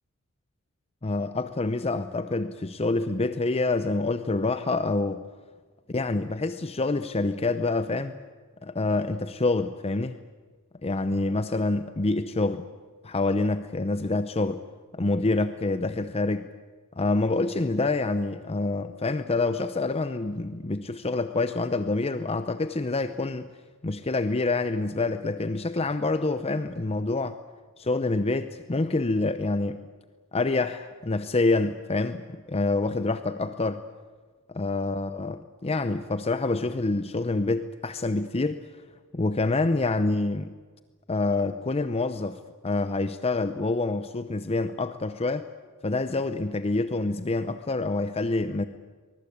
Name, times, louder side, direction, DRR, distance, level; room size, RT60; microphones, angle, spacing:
voice 1, 1.0-5.2 5.9-8.2 8.6-10.2 10.8-12.7 13.0-14.6 14.9-16.5 17.0-23.5 23.8-27.4 27.8-29.8 30.3-33.8 34.5-38.8 39.1-40.5 41.1-45.5 45.8-48.7, left 2 dB, 30° left, 11 dB, 0.7 m, -27 dB
24.0 x 21.5 x 8.6 m, 1.4 s
head